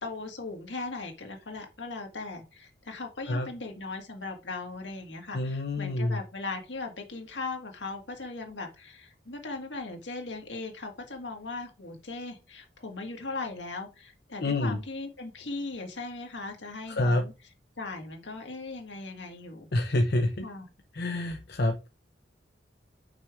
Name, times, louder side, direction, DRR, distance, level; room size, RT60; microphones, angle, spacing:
voice 1, 0.0-17.3 17.8-19.7 20.4-20.6, left 3 dB, 80° left, 3 dB, 1.9 m, -38 dB
voice 2, 5.3-6.2 14.4-14.8 16.9-17.2 19.7-20.5 20.9-21.9, left 1 dB, 60° left, 5 dB, 0.8 m, -27 dB
6.0 x 5.1 x 4.6 m, 0.29 s
head